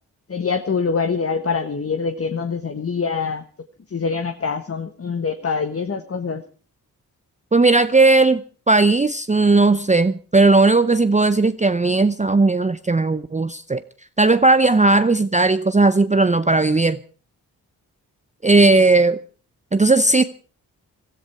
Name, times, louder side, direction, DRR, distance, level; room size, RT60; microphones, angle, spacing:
voice 1, 0.3-3.4 3.9-6.4, left 5 dB, 35° left, 1.2 m, -24 dB
voice 2, 7.5-8.4 8.7-13.8 14.2-17.0 18.4-19.2 19.7-20.2, right 3 dB, 20° right, 0.7 m, -16 dB
21.0 x 13.5 x 4.6 m
supercardioid pair, 45°, 39 cm